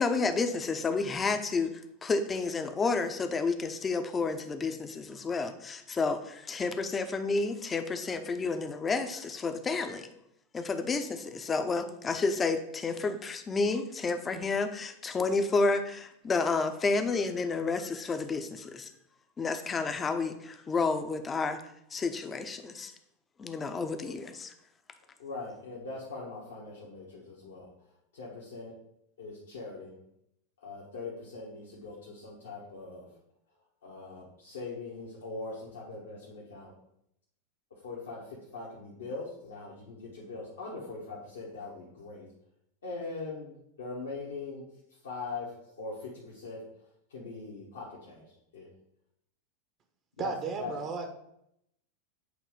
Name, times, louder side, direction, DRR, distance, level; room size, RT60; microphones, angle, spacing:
voice 1, 0.0-10.1 10.5-18.9 19.4-21.6 21.9-22.9 23.4-24.5, left 4 dB, 20° left, 8 dB, 0.7 m, -30 dB
voice 2, 25.2-27.7 28.1-28.7 29.2-30.0 30.6-33.1 33.8-36.7 37.8-42.3 42.8-44.6 45.0-45.5 45.8-46.6 47.1-48.3 48.5-48.7 50.2-50.3 50.6-50.7, left 3 dB, 70° left, -5 dB, 1.3 m, -41 dB
voice 3, 50.2-51.1, right 5 dB, 35° right, 5 dB, 0.9 m, -34 dB
8.1 x 3.0 x 4.9 m, 0.78 s
figure-of-eight pair, 90°, 0 cm